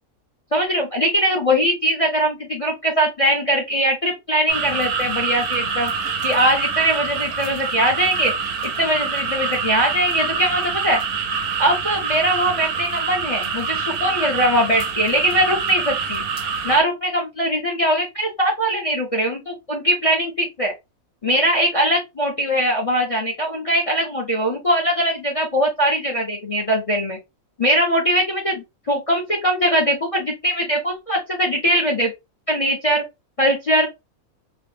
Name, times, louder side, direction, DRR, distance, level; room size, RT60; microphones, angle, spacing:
voice 1, 0.5-5.9 6.2-8.3 8.6-11.0 11.6-16.2 16.6-20.7 21.2-27.2 27.6-32.1 32.5-33.0 33.4-33.9, equal, 30° left, 0.7 m, -21 dB
sound 1, 4.5-16.8, right 5 dB, 85° right, 1.1 m, -26 dB
2.9 x 2.1 x 3.1 m
omnidirectional pair, 1.5 m